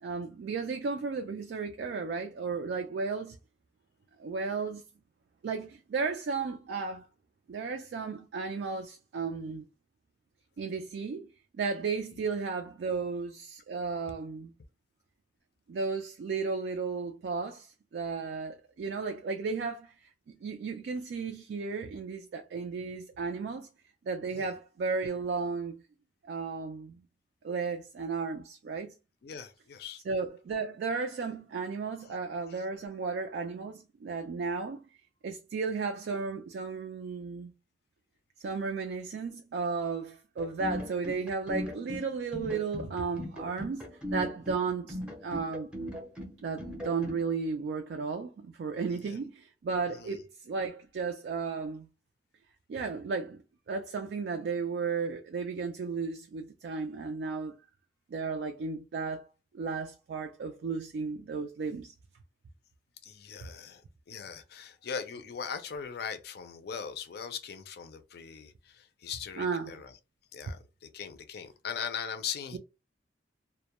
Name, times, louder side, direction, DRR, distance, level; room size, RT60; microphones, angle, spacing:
voice 1, 0.0-3.4 4.2-4.8 5.4-7.1 7.5-9.6 10.6-11.3 11.5-14.5 15.7-23.7 24.1-25.8 26.3-27.0 27.4-28.9 30.0-34.8 35.2-37.5 38.4-45.7 46.4-51.9 52.7-53.4 53.7-57.5 58.1-61.9 69.4-69.8 72.5-72.6, right 4 dB, 70° right, 0.3 m, -34 dB
voice 2, 29.2-30.0 32.5-32.6 49.0-49.2 49.9-50.2 63.0-63.8 64.1-69.9 70.3-72.6, left 7 dB, 65° left, 0.4 m, -40 dB
sound 1, 40.4-47.2, left 1 dB, 5° right, 0.6 m, -38 dB
2.1 x 2.0 x 2.9 m
head